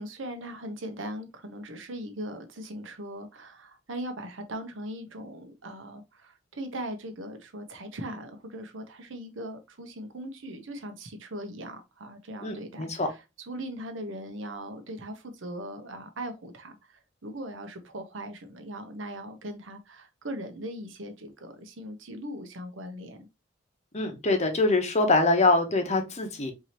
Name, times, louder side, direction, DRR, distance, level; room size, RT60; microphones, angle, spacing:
voice 1, 0.0-23.2, right 1 dB, 70° right, 0.9 m, -39 dB
voice 2, 12.4-13.1 23.9-26.5, left 2 dB, 35° left, 0.9 m, -24 dB
4.8 x 2.8 x 2.9 m
head